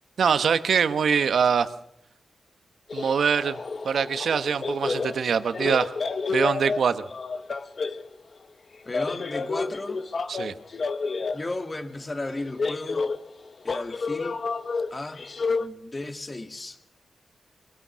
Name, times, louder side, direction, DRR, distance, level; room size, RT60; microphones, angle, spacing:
voice 1, 0.2-1.7 2.9-5.9 6.3-7.0 10.3-10.5, right 6 dB, 75° right, 11 dB, 1.1 m, -23 dB
sound 1, 2.9-8.1 8.9-11.5 12.2-15.7, left 4 dB, 50° left, 1.3 m, -30 dB
voice 2, 8.9-10.0 11.3-13.1 13.6-14.4 14.9-15.3 15.6-16.8, left 2 dB, 25° left, 7 dB, 2.0 m, -34 dB
23.5 x 18.5 x 6.3 m, 0.72 s
wide cardioid pair, 100°, 0 cm